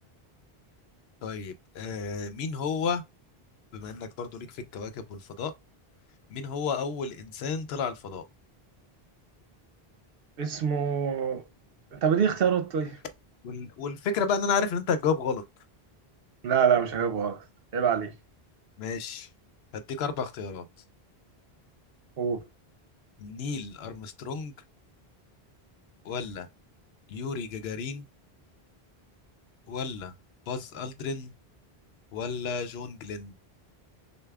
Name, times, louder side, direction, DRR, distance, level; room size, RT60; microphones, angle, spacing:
voice 1, 1.2-3.0 3.7-5.5 6.3-8.3 13.4-15.4 18.8-19.3 19.7-20.6 23.2-24.5 26.0-26.5 27.1-28.1 29.7-30.1 30.5-31.3 32.1-33.3, left 5 dB, 80° left, 0.8 m, -32 dB
voice 2, 10.4-11.4 11.9-13.0 16.4-17.4 17.7-18.1 22.2-22.4, right 7 dB, 70° right, 0.9 m, -25 dB
6.5 x 2.3 x 2.3 m
omnidirectional pair, 1.0 m